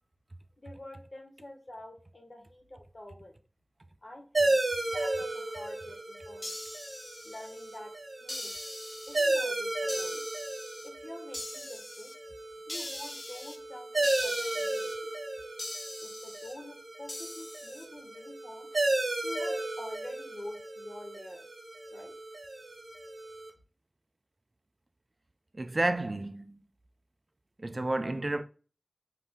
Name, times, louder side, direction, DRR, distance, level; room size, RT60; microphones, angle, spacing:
voice 1, 0.6-3.4 4.0-6.6 7.2-7.9 8.2-8.5 9.1-10.2 10.8-12.1 12.7-14.9 16.0-18.7 19.2-21.5 21.9-22.1, left 1 dB, 60° left, 1.3 m, -47 dB
sound 1, 4.3-23.5, right 2 dB, 75° right, 1.1 m, -34 dB
sound 2, 6.4-7.8 8.3-9.4 9.9-10.9 11.3-12.1 12.7-13.6 14.0-14.9 15.6-16.5 17.1-17.9, left 1 dB, 35° left, 1.0 m, -41 dB
voice 2, 25.5-26.6 27.6-28.4, right 2 dB, 45° right, 0.4 m, -31 dB
5.2 x 2.7 x 3.6 m
wide cardioid pair, 50°, 0 cm